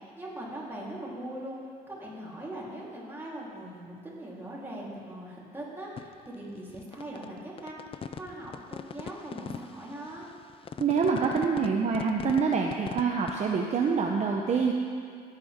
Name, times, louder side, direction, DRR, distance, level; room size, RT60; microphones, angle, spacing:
voice 1, 0.0-1.6 1.9-10.2, right 1 dB, 15° right, -6 dB, 3.8 m, -41 dB
sound 1, 6.0-13.3, left 7 dB, 35° left, 0.5 m, -39 dB
voice 2, 10.8-14.7, right 5 dB, 40° right, 0 dB, 1.0 m, -26 dB
19.0 x 8.8 x 3.7 m, 2.2 s
cardioid pair, 110°, 17 cm